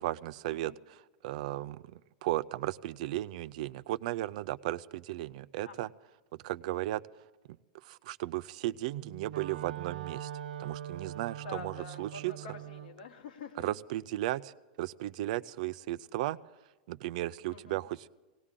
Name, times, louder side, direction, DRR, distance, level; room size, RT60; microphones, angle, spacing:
voice 1, 0.0-5.9 6.4-7.0 7.8-10.3 10.6-12.3 13.6-16.4 16.9-18.1, right 15 dB, 55° right, 16 dB, 0.4 m, -35 dB
Wind instrument woodwind instrument, 8.8-13.0, right 11 dB, 85° right, 0.8 m, -42 dB
voice 2, 11.4-13.7 17.5-17.8, left 5 dB, 80° left, 7 dB, 1.5 m, -46 dB
18.5 x 18.5 x 3.7 m, 1.2 s
supercardioid pair, 155°, 5 cm